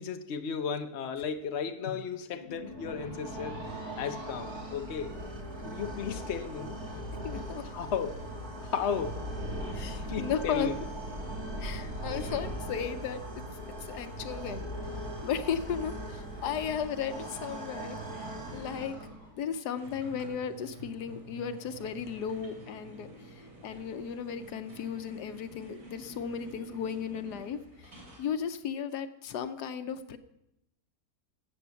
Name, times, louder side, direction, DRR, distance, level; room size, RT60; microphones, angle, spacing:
voice 1, 0.0-3.7 4.0-5.2 5.6-6.8 7.7-8.3 8.6-9.3 10.1-10.8, left 6 dB, 50° left, 1.0 m, -34 dB
sound 1, 2.3-15.7, left 4 dB, 25° right, 3.4 m, -54 dB
sound 2, 2.4-19.4, right 1 dB, 65° right, 3.1 m, -39 dB
voice 2, 7.2-7.7 9.7-10.7 11.6-13.3 13.5-19.0 19.3-30.2, left 7 dB, 75° left, 1.3 m, -35 dB
sound 3, 19.8-28.3, right 1 dB, 90° right, 3.7 m, -49 dB
14.5 x 7.9 x 7.0 m
omnidirectional pair, 1.8 m